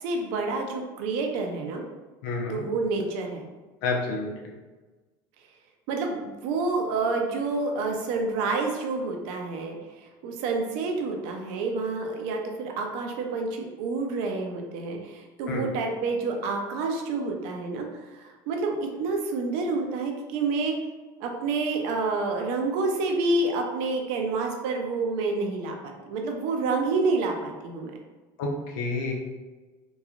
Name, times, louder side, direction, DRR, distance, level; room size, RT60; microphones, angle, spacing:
voice 1, 0.0-1.8 2.5-3.4 5.9-9.8 10.2-20.8 21.2-27.9, right 3 dB, 75° right, 2 dB, 0.5 m, -28 dB
voice 2, 2.2-2.6 3.8-4.5 15.5-15.7 28.4-29.1, left 3 dB, 85° left, 0 dB, 0.6 m, -29 dB
2.9 x 2.3 x 2.4 m, 1.2 s
supercardioid pair, 125°, 10 cm